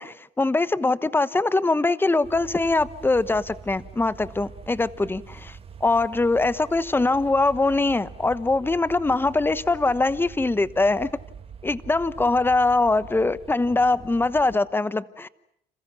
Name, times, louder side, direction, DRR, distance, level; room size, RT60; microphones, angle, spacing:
voice 1, 0.0-11.1 11.6-15.3, left 3 dB, 15° left, 16 dB, 1.1 m, -22 dB
sound 1, 2.2-14.6, right 6 dB, 35° right, 2.3 m, -44 dB
30.0 x 28.0 x 6.2 m, 0.72 s
cardioid pair, 110°, 17 cm